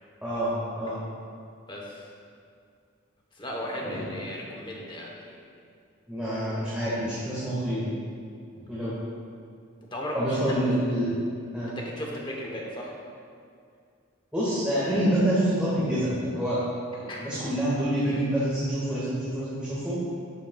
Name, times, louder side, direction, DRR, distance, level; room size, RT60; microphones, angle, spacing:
voice 1, 0.2-1.0 3.8-4.1 6.1-7.9 8.7-9.0 10.1-11.1 11.5-11.7 14.3-16.6 16.9-20.0, right 1 dB, 5° right, -11 dB, 1.5 m, -27 dB
voice 2, 1.7-2.1 3.3-5.4 8.8-8.9 9.9-10.7 11.8-12.9 17.1-17.2, equal, 25° left, -2 dB, 0.9 m, -36 dB
11.0 x 6.7 x 2.3 m, 2.3 s
head